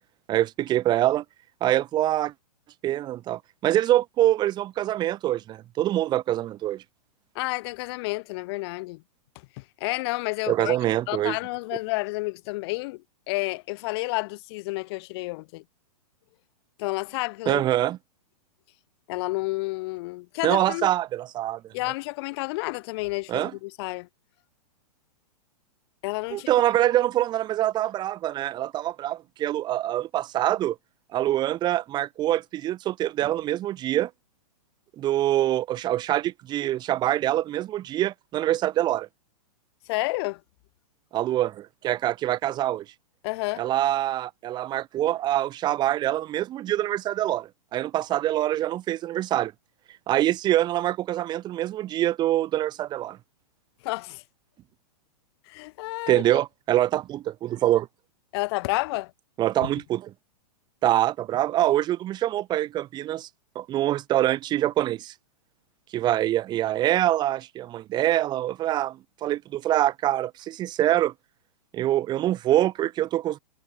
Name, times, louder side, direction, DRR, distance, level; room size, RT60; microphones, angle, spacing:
voice 1, 0.3-1.2 1.6-2.3 2.8-6.8 10.5-11.4 17.5-18.0 20.4-21.7 23.3-23.5 26.3-30.8 31.1-34.1 35.0-39.1 41.1-42.9 43.6-49.5 50.1-53.2 56.1-57.9 59.4-60.1 60.8-63.3 63.6-65.1 65.9-71.1 71.7-73.4, right 13 dB, 20° right, 3.5 m, -25 dB
voice 2, 7.3-9.0 9.6-10.8 11.1-15.6 16.8-17.6 19.1-20.9 21.7-24.1 26.0-26.5 39.9-40.4 43.2-43.6 53.8-54.2 55.5-56.2 58.3-59.1 59.6-59.7, left 23 dB, 40° left, 4.2 m, -30 dB
hypercardioid pair, 160°, 20 cm